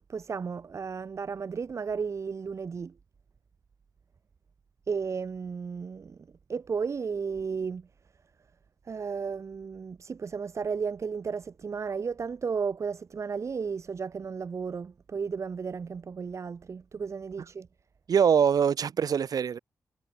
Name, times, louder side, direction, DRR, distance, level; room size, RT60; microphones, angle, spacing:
voice 1, 0.1-2.9 4.9-7.9 8.9-17.7, right 5 dB, 50° right, 4.2 m, -34 dB
voice 2, 18.1-19.6, right 7 dB, 70° right, 3.9 m, -23 dB
wide cardioid pair, 165°, 7 cm